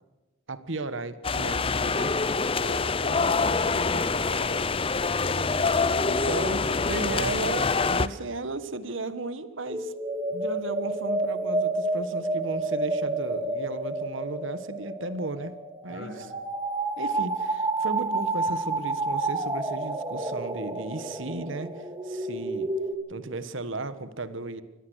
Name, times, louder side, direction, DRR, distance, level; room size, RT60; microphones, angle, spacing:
voice 1, 0.5-2.1 6.3-6.6 6.9-9.9 10.3-15.5 15.8-16.3 17.0-22.7 23.1-24.6, right 2 dB, 65° right, 13 dB, 1.4 m, -35 dB
sound 1, 1.2-8.1, left 4 dB, 25° left, 0.6 m, -25 dB
voice 2, 2.6-4.6 5.1-7.4 15.9-16.3, left 1 dB, 55° left, 4 dB, 6.0 m, -38 dB
sound 2, 9.7-22.9, right 2 dB, 20° right, 2.3 m, -30 dB
25.0 x 17.0 x 6.4 m, 1.1 s
head